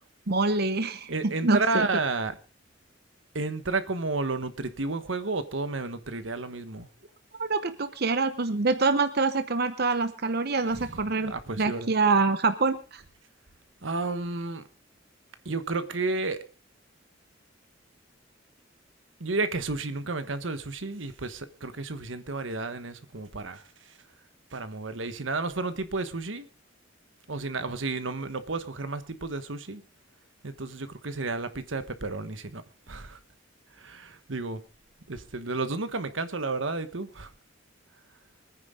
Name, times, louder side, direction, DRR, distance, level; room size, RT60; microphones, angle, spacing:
voice 1, 0.3-1.1 1.4-1.9 7.4-13.0, right 3 dB, 55° right, 0.9 m, -25 dB
voice 2, 1.1-2.4 3.3-6.9 10.7-11.9 13.8-14.6 15.4-16.4 19.2-23.7 24.5-26.5 27.3-29.8 30.4-32.6 32.9-33.2 33.8-34.6 35.1-37.3, right 3 dB, 80° right, 1.2 m, -32 dB
24.5 x 9.8 x 3.7 m
head